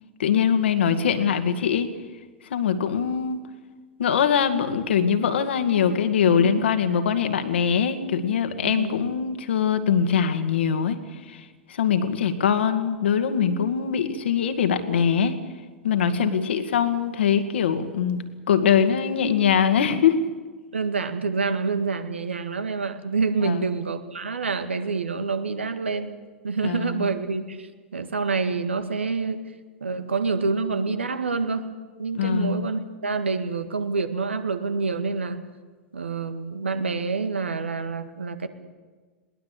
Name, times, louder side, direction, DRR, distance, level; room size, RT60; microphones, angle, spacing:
voice 1, 0.2-1.9 2.5-3.4 4.0-11.0 11.3-15.4 15.8-20.3 23.4-23.6 26.6-27.1 32.2-32.7, left 7 dB, 70° left, 9 dB, 2.1 m, -22 dB
voice 2, 6.3-6.6 8.6-9.1 16.1-16.5 20.7-26.2 26.4-29.4 29.8-31.7 32.0-35.4 35.9-38.5, right 4 dB, 80° right, 9 dB, 1.9 m, -27 dB
21.5 x 19.5 x 8.3 m, 1.4 s
figure-of-eight pair, 100°, 6 cm